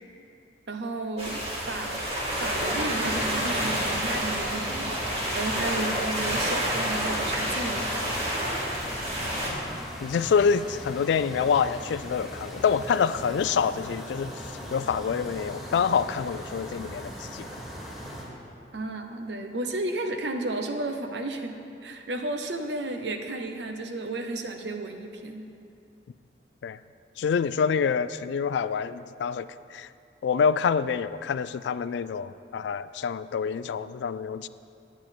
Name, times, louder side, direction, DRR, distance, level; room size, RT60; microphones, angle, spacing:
voice 1, 0.7-1.4 1.7-2.0 2.4-8.0 18.7-25.5, right 2 dB, 80° right, 5 dB, 0.8 m, -33 dB
sound 1, 1.2-9.5, equal, 35° right, 1.9 m, -29 dB
sound 2, 2.5-18.2, equal, ahead, 1.9 m, -40 dB
voice 2, 10.0-17.5 26.6-26.8 27.2-29.9 30.2-34.5, left 6 dB, 80° left, 15 dB, 0.3 m, -26 dB
10.5 x 9.4 x 4.5 m, 2.6 s
head